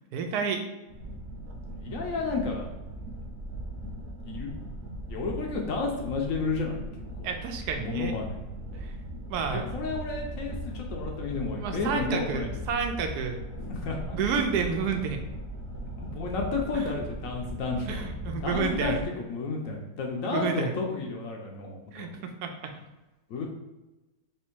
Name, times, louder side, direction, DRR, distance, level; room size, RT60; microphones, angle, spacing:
voice 1, 0.1-0.6 7.2-8.2 8.7-8.9 9.3-9.7 11.6-13.4 14.1-15.2 16.7-16.9 17.9-19.0 20.2-20.7 21.9-22.7, right 6 dB, 80° right, 5 dB, 1.1 m, -30 dB
sound 1, 0.9-19.0, right 1 dB, 55° right, 0.7 m, -38 dB
voice 2, 1.8-2.7 4.2-4.5 5.1-6.8 7.2-7.3 7.8-8.4 9.5-12.6 13.6-14.2 16.0-18.0 18.4-19.0 19.3-22.1 23.3-23.5, left 4 dB, 65° left, 1 dB, 1.0 m, -32 dB
3.4 x 2.9 x 4.5 m, 1.1 s
omnidirectional pair, 1.7 m